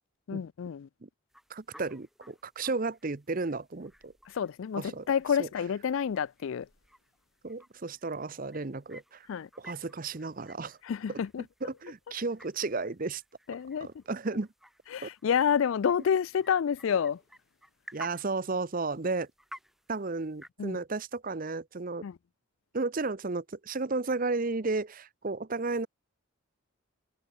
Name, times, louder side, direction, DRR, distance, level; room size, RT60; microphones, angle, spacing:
voice 1, 0.3-0.9 4.3-6.7 9.3-9.5 10.8-11.4 13.5-13.9 14.9-17.2 20.6-20.8 22.0-22.1, left 7 dB, 65° left, 0.3 m, -29 dB
sound 1, 1.3-20.5, equal, ahead, 6.3 m, -55 dB
voice 2, 1.5-4.1 4.7-5.1 5.4-5.5 7.4-9.3 9.6-10.8 11.1-11.2 11.6-13.2 13.8-14.5 15.0-15.1 17.9-19.3 19.9-22.0 22.7-25.9, right 3 dB, 40° right, 0.7 m, -33 dB
head